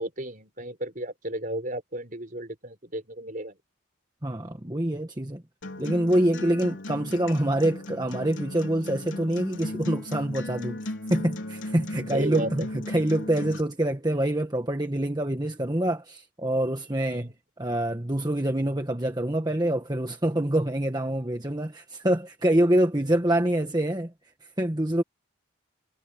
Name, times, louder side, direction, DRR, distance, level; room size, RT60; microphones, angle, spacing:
voice 1, 0.0-3.6 12.1-12.7 17.1-17.3, right 1 dB, 40° right, 5.7 m, -33 dB
voice 2, 4.2-5.4 5.8-17.3 17.6-24.1 24.4-25.0, right 1 dB, 20° right, 1.3 m, -26 dB
Acoustic guitar, 5.6-13.6, left 1 dB, 70° left, 3.5 m, -36 dB
head